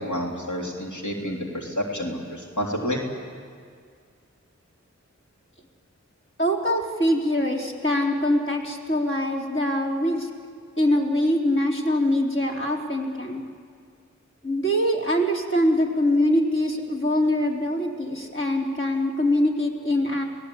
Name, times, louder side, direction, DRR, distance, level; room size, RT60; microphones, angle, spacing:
voice 1, 0.0-3.0, equal, 85° left, -2 dB, 3.5 m, -29 dB
voice 2, 6.4-10.3 10.8-13.4 14.4-20.2, left 1 dB, 45° left, -1 dB, 3.9 m, -23 dB
29.5 x 18.5 x 8.6 m, 2.1 s
wide cardioid pair, 50°, 29 cm